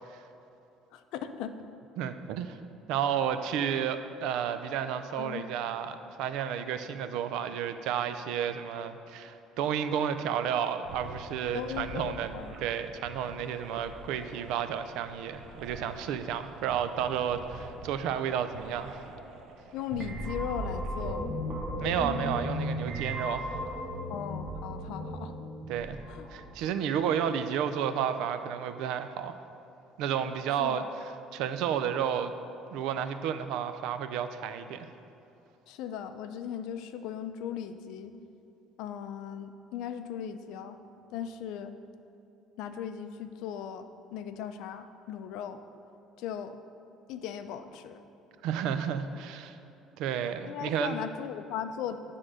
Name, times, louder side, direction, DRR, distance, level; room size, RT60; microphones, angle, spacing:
voice 1, 0.9-1.6 5.1-5.4 11.5-12.7 19.7-21.3 24.1-25.3 26.1-26.3 30.6-30.9 35.7-38.1 38.8-40.8 41.1-41.7 42.6-45.6 46.2-46.6 47.1-48.0 50.5-52.0, left 8 dB, 75° left, 9 dB, 0.5 m, -38 dB
voice 2, 2.0-2.6 2.9-12.3 12.6-19.0 21.8-23.5 25.7-26.0 26.3-29.4 30.0-32.3 32.7-34.9 48.4-49.6 50.0-51.0, right 8 dB, 75° right, 10 dB, 0.5 m, -31 dB
sound 1, 10.8-21.1, right 3 dB, 55° right, 0.9 m, -47 dB
sound 2, 19.9-26.8, equal, 15° right, 1.4 m, -35 dB
9.8 x 3.8 x 6.3 m, 2.8 s
cardioid pair, 150°, 0 cm